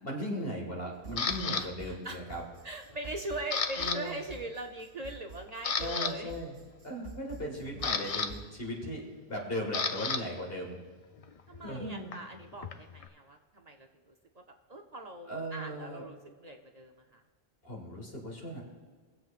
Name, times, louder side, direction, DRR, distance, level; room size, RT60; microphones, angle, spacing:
voice 1, 0.0-2.4 3.8-4.2 5.8-6.5 6.8-10.8 11.6-12.1 15.3-16.0 17.6-18.6, equal, 65° left, 0 dB, 2.1 m, -37 dB
sound 1, 0.9-8.6, right 4 dB, 85° right, 1.8 m, -49 dB
Camera, 1.2-1.6 2.2-2.6 2.9-4.0 4.2-4.5 5.0-5.1 5.5-6.1 7.3-10.2 10.5-13.1, left 5 dB, 45° left, 0.5 m, -34 dB
voice 2, 1.6-2.2 2.6-6.3 11.5-14.4 14.7-17.2, right 2 dB, 45° right, 3 dB, 0.7 m, -41 dB
19.5 x 7.7 x 2.4 m, 1.5 s
omnidirectional pair, 1.1 m